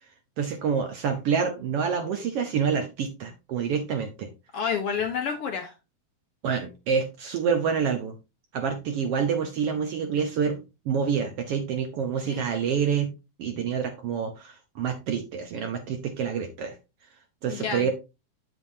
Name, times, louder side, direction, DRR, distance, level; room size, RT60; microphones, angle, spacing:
voice 1, 0.4-4.3 6.4-8.1 8.5-13.1 13.4-16.7 17.4-17.9, right 6 dB, 65° right, 6 dB, 1.5 m, -27 dB
voice 2, 4.5-5.7 12.3-12.4 17.5-17.9, left 6 dB, 65° left, 4 dB, 1.6 m, -29 dB
8.1 x 7.0 x 2.7 m, 0.26 s
omnidirectional pair, 3.5 m